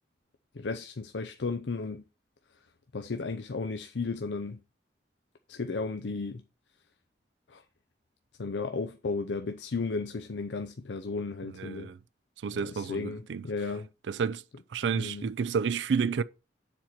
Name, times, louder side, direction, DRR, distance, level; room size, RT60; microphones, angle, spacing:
voice 1, 0.5-2.0 2.9-4.6 5.5-6.4 7.5-7.6 8.4-11.9 12.6-13.9 15.0-15.2, left 4 dB, 80° left, 0.6 m, -34 dB
voice 2, 11.4-12.0 12.4-13.5 14.1-14.4 14.7-16.2, right 6 dB, 80° right, 0.4 m, -30 dB
7.3 x 4.3 x 5.9 m
head